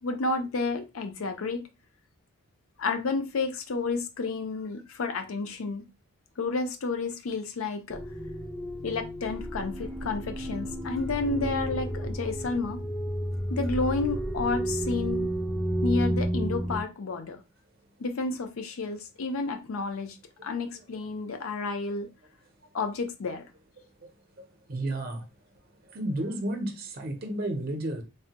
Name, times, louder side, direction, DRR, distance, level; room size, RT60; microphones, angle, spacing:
voice 1, 0.0-1.6 2.8-5.8 6.4-8.0 8.8-12.8 13.5-15.3 15.8-17.4 18.0-20.2 20.4-22.1 22.7-23.4, left 3 dB, 75° left, 0.5 m, -31 dB
sound 1, 7.9-16.8, right 1 dB, ahead, 0.3 m, -31 dB
voice 2, 23.8-24.1 24.4-25.3 25.8-28.0, right 1 dB, 45° right, 0.6 m, -33 dB
3.3 x 2.1 x 2.8 m
head